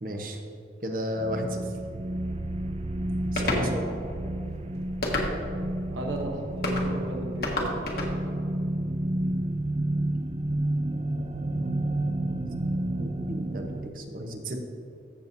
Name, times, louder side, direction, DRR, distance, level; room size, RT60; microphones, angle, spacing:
voice 1, 0.0-0.4 0.8-1.6 3.3-3.7 13.0-14.6, equal, 50° right, 3 dB, 1.0 m, -33 dB
sound 1, 1.2-13.9, right 1 dB, 35° right, 0.4 m, -30 dB
sound 2, 3.4-3.7 5.0-5.6 6.6-6.9 7.4-8.1, left 2 dB, 55° left, 1.4 m, -28 dB
voice 2, 3.6-4.3 5.9-7.9, right 1 dB, 85° right, 1 dB, 1.0 m, -35 dB
14.5 x 7.0 x 2.7 m, 2.7 s
head